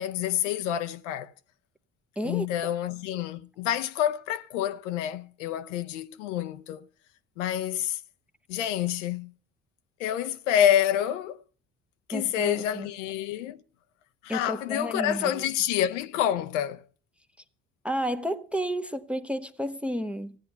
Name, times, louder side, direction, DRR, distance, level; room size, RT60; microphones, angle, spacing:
voice 1, 0.0-1.3 2.2-6.9 7.4-8.0 8.5-9.3 10.0-11.4 12.1-13.6 14.2-16.8, left 11 dB, 75° left, 0.6 m, -28 dB
voice 2, 2.2-2.5 12.1-12.9 14.3-15.4 17.8-20.4, equal, 5° right, 0.7 m, -31 dB
15.0 x 9.2 x 6.7 m
hypercardioid pair, 50°, 37 cm